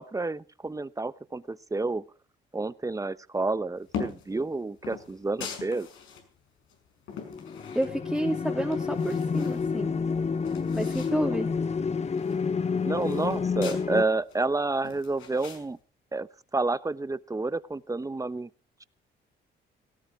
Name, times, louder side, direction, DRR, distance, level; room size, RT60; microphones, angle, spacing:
voice 1, 0.0-2.0 2.5-5.9 12.8-15.8 16.1-16.3 16.5-18.5, right 3 dB, 15° right, 15 dB, 0.9 m, -29 dB
sound 1, 3.9-4.3 4.8-6.2 6.7-8.2 8.6-9.6 10.0-10.1 10.3-11.2 11.5-11.6 11.9-13.8 14.3-15.6, left 7 dB, 85° left, 5.9 m, -41 dB
sound 2, 7.1-14.0, left 5 dB, 35° left, 1.0 m, -29 dB
voice 2, 7.7-10.0 10.7-11.5, equal, ahead, 0 dB, 2.8 m, -30 dB
17.0 x 17.0 x 4.8 m, 0.38 s
cardioid pair, 90°, 20 cm